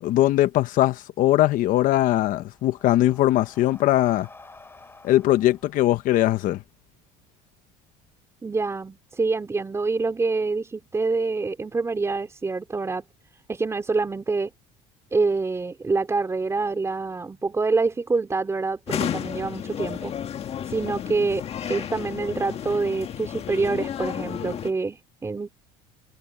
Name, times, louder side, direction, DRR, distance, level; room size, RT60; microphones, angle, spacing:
voice 1, 0.0-4.3 5.0-6.6, left 14 dB, 55° left, 1.0 m, -20 dB
Breathing, 2.5-6.7, left 3 dB, 15° left, 7.8 m, -50 dB
voice 2, 8.4-13.0 13.5-14.5 15.1-20.1 20.7-25.5, right 3 dB, 15° right, 3.9 m, -26 dB
sound 1, 18.9-24.7, left 9 dB, 40° left, 1.6 m, -32 dB
cardioid pair, 120°, 17 cm